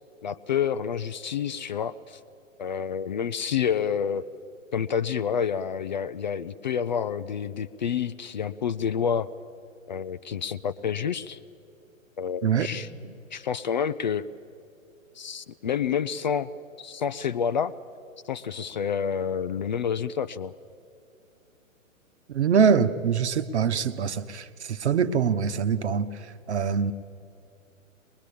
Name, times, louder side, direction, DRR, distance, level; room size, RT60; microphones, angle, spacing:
voice 1, 0.2-2.2 2.6-4.2 4.7-9.3 9.9-11.4 12.2-14.3 15.2-16.5 16.8-17.7 18.2-20.5, left 7 dB, 35° left, 14 dB, 0.5 m, -28 dB
voice 2, 22.3-26.1 26.5-26.9, right 6 dB, 55° right, 12 dB, 1.2 m, -24 dB
22.0 x 21.0 x 8.4 m, 2.6 s
figure-of-eight pair, 125°, 40 cm